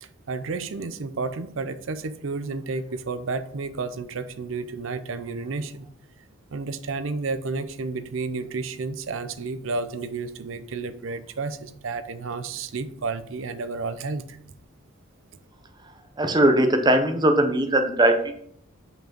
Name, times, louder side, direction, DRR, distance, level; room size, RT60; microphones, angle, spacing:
voice 1, 0.0-5.9 6.5-14.4, right 4 dB, 65° right, 12 dB, 0.6 m, -31 dB
voice 2, 16.2-18.3, right 1 dB, 20° right, 6 dB, 0.7 m, -20 dB
5.5 x 4.6 x 5.8 m, 0.65 s
head